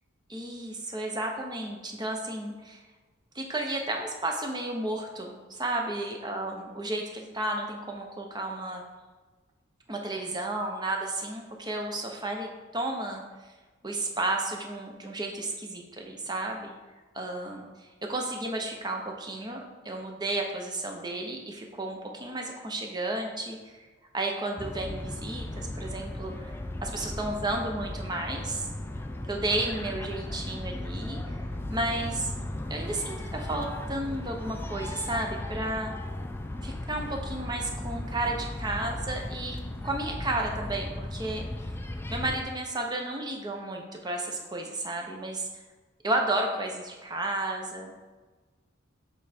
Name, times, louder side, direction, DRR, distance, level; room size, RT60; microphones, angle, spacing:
voice 1, 0.3-2.8 3.3-8.8 9.9-13.2 13.8-16.7 17.1-17.7 18.0-23.7 24.1-26.5 26.8-28.7 29.3-31.4 31.7-32.3 32.7-35.9 36.6-39.6 39.8-41.4 42.1-45.5 46.0-48.0, right 2 dB, 20° right, 2 dB, 0.7 m, -32 dB
sound 1, 24.6-42.4, left 1 dB, 10° left, 0.3 m, -36 dB
7.1 x 3.5 x 4.3 m, 1.3 s
head